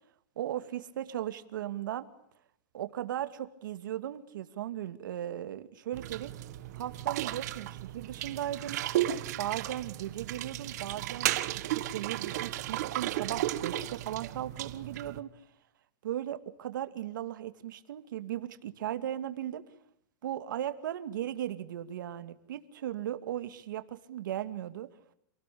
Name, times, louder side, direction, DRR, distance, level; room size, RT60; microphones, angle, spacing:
voice 1, 0.4-2.1 2.7-6.3 6.7-8.8 9.4-15.3 16.0-19.6 20.2-24.9, right 11 dB, 85° right, 10 dB, 2.3 m, -37 dB
sound 1, 5.9-15.2, right 14 dB, 60° right, 1.7 m, -34 dB
28.5 x 19.0 x 8.5 m, 0.76 s
supercardioid pair, 165°, 10 cm